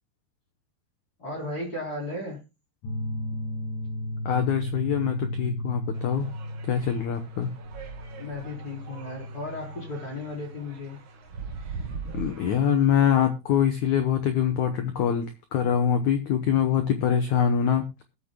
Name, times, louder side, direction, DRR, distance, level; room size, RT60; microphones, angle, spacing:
voice 1, 1.2-2.4 8.1-11.0, left 2 dB, 20° left, -1 dB, 4.1 m, -35 dB
sound 1, 2.8-14.0, left 1 dB, 50° left, 3.6 m, -36 dB
voice 2, 4.2-6.3 6.7-7.5 12.1-18.0, left 8 dB, 75° left, 7 dB, 1.7 m, -24 dB
sound 2, 5.9-12.6, right 5 dB, 85° right, 1.1 m, -41 dB
21.5 x 8.4 x 2.2 m, 0.26 s
omnidirectional pair, 4.8 m